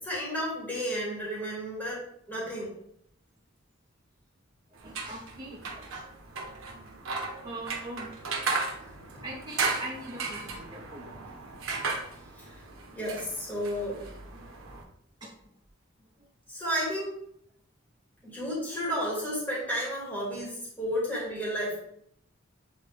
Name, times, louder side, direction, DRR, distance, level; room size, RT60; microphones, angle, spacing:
voice 1, 0.0-2.7 12.4-12.6 12.9-14.0 16.5-17.2 18.2-21.8, equal, 10° left, -6 dB, 2.7 m, -32 dB
voice 2, 4.8-6.0 7.4-8.1 9.2-11.1 15.2-15.3 21.1-21.2, right 1 dB, 20° right, -5 dB, 2.6 m, -41 dB
sound 1, 4.8-14.8, right 4 dB, 75° right, 1.3 m, -36 dB
9.2 x 3.9 x 3.6 m, 0.70 s
head